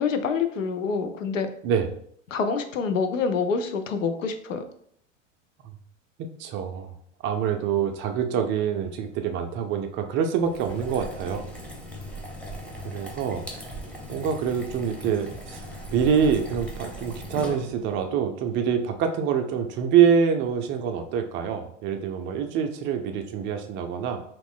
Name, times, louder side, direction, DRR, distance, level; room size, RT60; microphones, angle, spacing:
voice 1, 0.0-1.5 2.3-4.7, left 5 dB, 80° left, 8 dB, 0.6 m, -26 dB
voice 2, 6.4-6.9 7.2-11.5 12.8-13.5 14.1-15.6 15.9-24.2, right 7 dB, 30° right, 5 dB, 0.4 m, -25 dB
sound 1, 10.4-18.0, equal, 5° left, 0.8 m, -38 dB
2.9 x 2.5 x 3.6 m, 0.65 s
hypercardioid pair, 90°, 38 cm